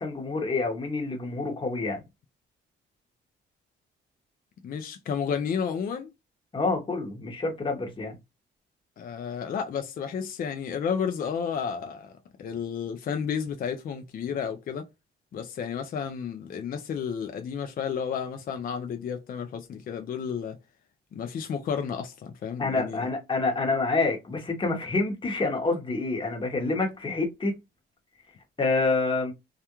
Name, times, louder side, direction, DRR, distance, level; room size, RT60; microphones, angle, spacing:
voice 1, 0.0-2.0 6.5-8.2 22.6-27.5 28.6-29.3, left 3 dB, 25° left, 1.0 m, -27 dB
voice 2, 4.6-6.1 9.0-12.1 12.4-14.9 15.3-20.6 21.1-23.1, left 7 dB, 45° left, 0.4 m, -32 dB
2.3 x 2.2 x 2.9 m
cardioid pair, 90°, 20 cm